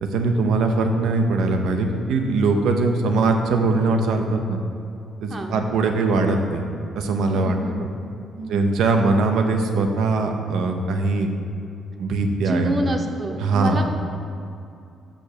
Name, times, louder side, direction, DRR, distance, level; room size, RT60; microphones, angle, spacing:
voice 1, 0.0-4.6 5.2-6.7 6.9-7.6 8.5-11.3 12.0-12.8 13.4-13.8, right 3 dB, 80° right, 4 dB, 0.8 m, -21 dB
voice 2, 7.3-7.8 8.3-8.7 12.4-13.8, right 1 dB, 35° right, 3 dB, 0.9 m, -27 dB
6.2 x 5.2 x 6.7 m, 2.5 s
cardioid pair, 90°, 0 cm